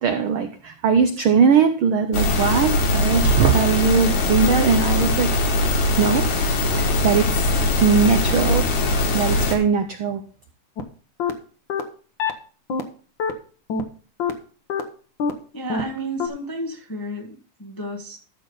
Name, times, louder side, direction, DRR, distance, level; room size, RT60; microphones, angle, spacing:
voice 1, 0.0-5.3 6.0-6.3 6.7-8.7 9.1-10.2, right 6 dB, 75° right, 7 dB, 1.2 m, -20 dB
sound 1, 2.1-9.6, left 2 dB, 75° left, 3.2 m, -21 dB
sound 2, 10.8-10.9 11.2-11.3 11.7-11.8 12.2-12.3 12.7-12.8 13.2-13.3 13.7-13.8 14.2-14.3 14.7-14.8 15.2-15.3 15.7-15.8 16.2-16.3, left 6 dB, 60° left, 1.3 m, -23 dB
voice 2, 15.5-18.2, right 1 dB, 15° left, 1 dB, 0.7 m, -32 dB
13.5 x 6.5 x 3.9 m, 0.40 s
omnidirectional pair, 3.3 m